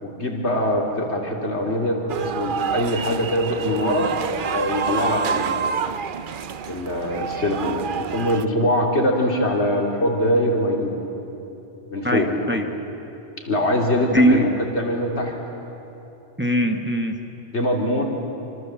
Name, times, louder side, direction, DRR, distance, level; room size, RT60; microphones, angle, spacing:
voice 1, 0.0-4.1 4.5-5.7 6.7-11.0 11.9-12.3 13.4-15.3 17.5-18.0, left 1 dB, 80° left, 0 dB, 3.4 m, -23 dB
sound 1, 2.1-8.5, right 6 dB, 55° right, 0.8 m, -28 dB
voice 2, 12.0-12.6 14.1-14.5 16.4-17.1, equal, 10° right, 4 dB, 1.4 m, -20 dB
25.5 x 25.5 x 7.6 m, 3.0 s
omnidirectional pair, 1.1 m